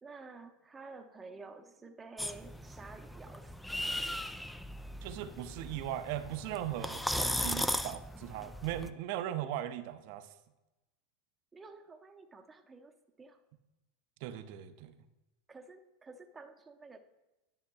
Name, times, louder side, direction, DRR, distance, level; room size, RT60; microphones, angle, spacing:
voice 1, 0.0-4.0 11.5-13.4 15.5-17.0, right 3 dB, 20° right, 6 dB, 0.7 m, -51 dB
sound 1, 2.2-8.9, left 1 dB, 5° left, 0.3 m, -37 dB
voice 2, 5.0-10.3 14.2-14.9, right 12 dB, 60° right, 11 dB, 0.5 m, -38 dB
10.5 x 6.4 x 2.3 m, 1.0 s
hypercardioid pair, 85°, 0 cm